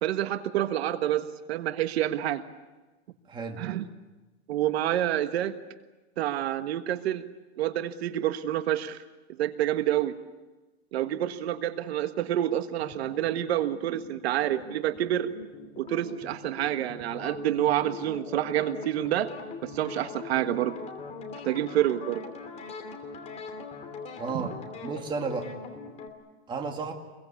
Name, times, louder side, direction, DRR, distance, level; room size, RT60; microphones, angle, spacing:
voice 1, 0.0-2.4 3.6-3.8 4.5-5.5 6.2-7.2 7.6-9.0 9.4-10.1 10.9-15.3 15.8-19.3 19.6-20.8 21.4-22.2 24.3-24.5, right 12 dB, 70° right, 10 dB, 1.5 m, -28 dB
voice 2, 3.3-3.6 24.2-24.5 24.8-25.5 26.5-26.9, right 4 dB, 15° right, 3 dB, 2.2 m, -32 dB
sound 1, 12.8-26.1, left 4 dB, 20° left, 2.8 m, -42 dB
26.0 x 22.0 x 8.4 m, 1.2 s
supercardioid pair, 170°, 33 cm